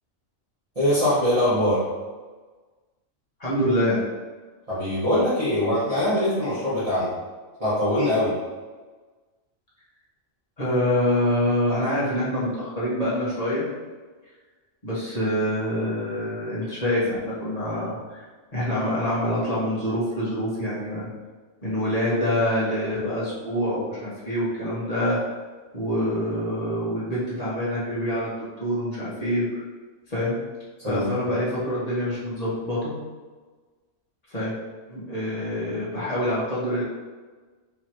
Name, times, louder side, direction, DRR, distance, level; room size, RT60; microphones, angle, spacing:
voice 1, 0.7-1.8 4.7-7.1 7.6-8.3 30.8-31.1, left 1 dB, 30° right, -12 dB, 1.3 m, -22 dB
voice 2, 3.4-4.0 10.6-13.6 14.8-18.2 18.5-21.1 21.6-25.2 25.7-28.3 28.6-29.4 30.1-30.3 30.8-32.9 34.3-34.5 34.9-36.8, equal, 30° left, -9 dB, 1.6 m, -26 dB
4.8 x 3.0 x 3.0 m, 1.4 s
omnidirectional pair, 1.4 m